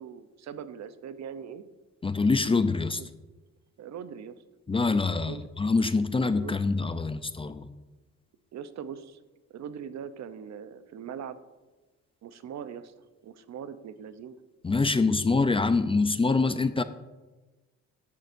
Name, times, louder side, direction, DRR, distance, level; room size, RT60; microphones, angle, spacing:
voice 1, 0.0-1.6 3.0-3.1 3.8-4.4 5.2-5.4 6.4-6.6 8.5-9.2 9.5-11.4 12.2-12.9 13.2-14.4, right 8 dB, 65° right, 12 dB, 0.8 m, -41 dB
voice 2, 2.0-3.0 4.7-7.7 14.6-16.8, left 3 dB, 20° left, 11 dB, 0.5 m, -25 dB
13.5 x 10.5 x 2.6 m, 1.2 s
cardioid pair, 90°, 30 cm